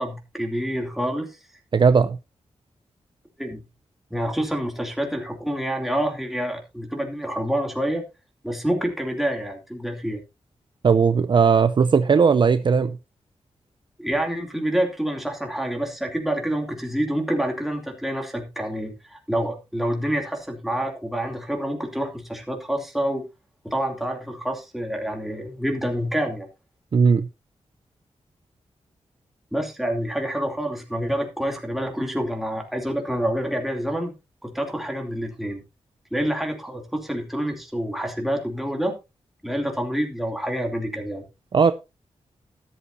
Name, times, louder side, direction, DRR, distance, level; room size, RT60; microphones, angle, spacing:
voice 1, 0.0-1.4 3.4-3.6 4.1-8.0 8.4-10.2 14.0-23.2 23.6-26.5 29.5-34.1 34.4-35.6 36.1-39.0 39.4-41.2, equal, ahead, 2 dB, 2.7 m, -27 dB
voice 2, 1.7-2.2 10.8-13.0 26.9-27.3 41.5-41.7, right 5 dB, 45° right, 12 dB, 0.5 m, -17 dB
13.0 x 11.5 x 2.7 m, 0.26 s
wide cardioid pair, 130°, 11 cm